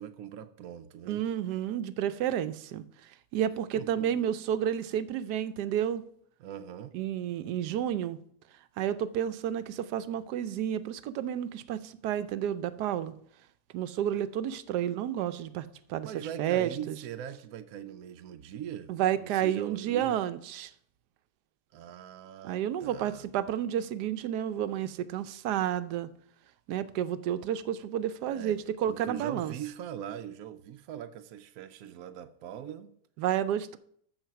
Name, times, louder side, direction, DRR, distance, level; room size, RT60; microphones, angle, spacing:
voice 1, 0.0-1.2 3.8-4.2 6.4-6.9 16.0-20.2 21.7-23.3 28.3-28.6 28.9-32.9, right 10 dB, 70° right, 1.0 m, -42 dB
voice 2, 1.1-2.8 3.3-6.1 6.9-8.2 8.8-13.1 13.7-17.0 18.9-20.7 22.4-26.1 26.7-29.5 33.2-33.8, right 10 dB, 90° right, 1.2 m, -31 dB
14.0 x 4.7 x 5.7 m
omnidirectional pair, 1.7 m